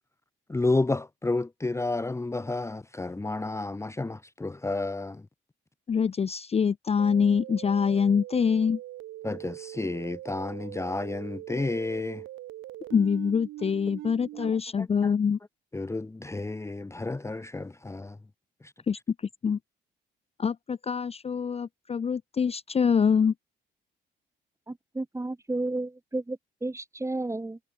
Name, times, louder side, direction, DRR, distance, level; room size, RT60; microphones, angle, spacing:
voice 1, 0.5-5.3 9.2-12.2 14.4-14.5 14.8-15.1 15.7-18.2 18.6-18.7, left 2 dB, 15° left, 1.0 m, -31 dB
voice 2, 5.9-8.8 12.9-15.4 18.9-19.0 19.4-19.6 20.4-23.3, left 6 dB, 30° left, 0.6 m, -25 dB
sound 1, 7.0-14.5, right 15 dB, 85° right, 7.1 m, -42 dB
voice 3, 24.7-27.6, right 2 dB, 15° right, 2.3 m, -32 dB
cardioid pair, 90°, 20 cm